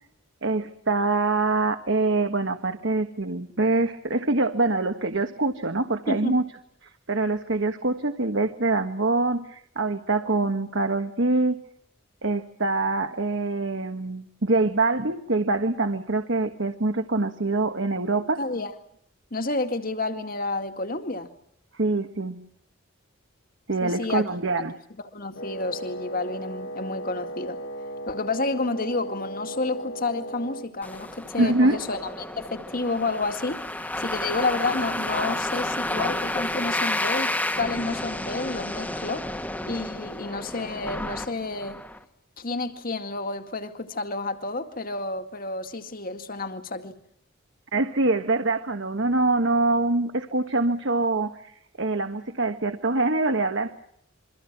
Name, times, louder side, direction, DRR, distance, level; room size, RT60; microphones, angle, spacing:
voice 1, 0.4-6.4 7.1-11.6 12.2-18.4 21.7-22.5 23.7-24.7 31.4-31.8 47.7-53.7, right 2 dB, 60° right, 1.6 m, -24 dB
voice 2, 18.4-18.7 19.3-21.3 23.8-24.3 25.1-27.6 28.1-33.6 34.0-39.2 39.7-41.8 42.4-47.0, left 3 dB, 45° left, 2.1 m, -30 dB
Wind instrument woodwind instrument, 25.3-30.7, right 1 dB, 60° left, 1.6 m, -36 dB
sound 1, 30.8-42.0, left 1 dB, 10° left, 1.5 m, -31 dB
28.5 x 24.0 x 6.1 m
head